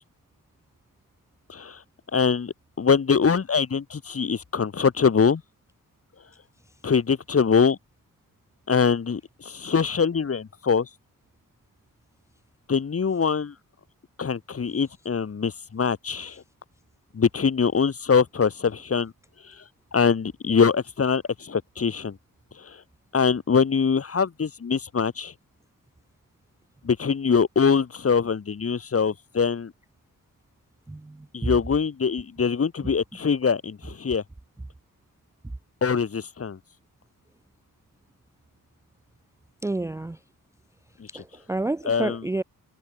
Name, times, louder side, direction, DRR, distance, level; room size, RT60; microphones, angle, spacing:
voice 1, 1.5-1.8 2.1-5.4 6.8-7.8 8.7-10.9 12.7-13.5 14.2-16.4 17.1-19.1 19.4-19.6 19.9-22.2 22.6-22.8 23.1-25.3 26.8-29.7 31.3-34.2 35.8-36.6 41.0-41.2 41.9-42.2, left 6 dB, 40° left, 2.4 m, -23 dB
voice 2, 30.9-31.5 39.6-40.2 41.1-42.4, right 2 dB, 10° right, 0.5 m, -29 dB
cardioid pair, 110°, 35 cm